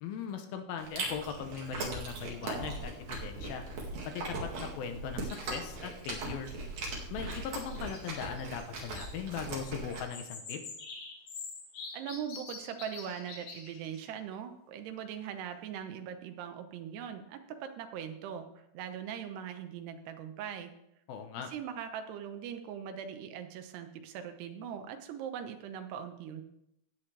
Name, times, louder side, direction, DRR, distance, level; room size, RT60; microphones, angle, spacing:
voice 1, 0.0-3.7 4.1-6.5 7.1-10.6 21.1-21.5, left 7 dB, 75° left, 6 dB, 2.5 m, -39 dB
Chewing mastication, 0.8-10.0, right 2 dB, 50° right, 2.9 m, -39 dB
sound 1, 7.7-9.0 9.9-14.1, left 4 dB, 50° left, 2.1 m, -46 dB
voice 2, 11.9-18.5 18.7-20.7 21.5-26.4, right 8 dB, 85° right, 7 dB, 3.0 m, -41 dB
15.5 x 8.9 x 3.3 m, 0.79 s
omnidirectional pair, 4.6 m